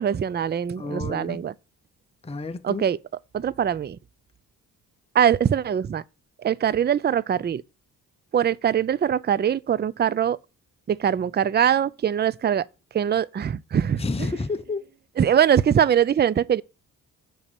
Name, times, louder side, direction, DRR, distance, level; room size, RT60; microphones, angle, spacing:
voice 1, 0.0-1.5 2.6-3.0 3.3-4.0 5.1-6.0 6.4-7.6 8.3-10.4 10.9-12.6 12.9-14.3 15.2-16.6, right 9 dB, 25° right, 0.4 m, -22 dB
voice 2, 0.7-1.4 2.2-2.8 14.0-14.9, left 3 dB, 15° left, 0.8 m, -30 dB
7.0 x 5.5 x 6.9 m
cardioid pair, 65°, 39 cm